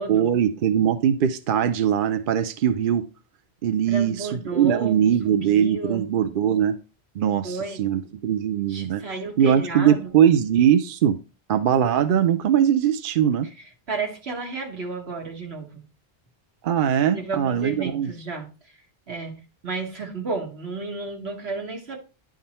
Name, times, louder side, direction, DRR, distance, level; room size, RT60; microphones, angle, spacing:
voice 1, 0.1-3.0 3.6-6.8 7.2-9.0 9.4-11.2 11.5-13.5 16.6-18.1, right 9 dB, 60° right, 0.7 m, -21 dB
voice 2, 3.9-6.1 7.4-7.8 8.7-10.1 13.6-15.8 17.1-18.7 19.1-22.0, right 3 dB, 80° right, 1.8 m, -32 dB
10.5 x 3.7 x 4.3 m
omnidirectional pair, 1.1 m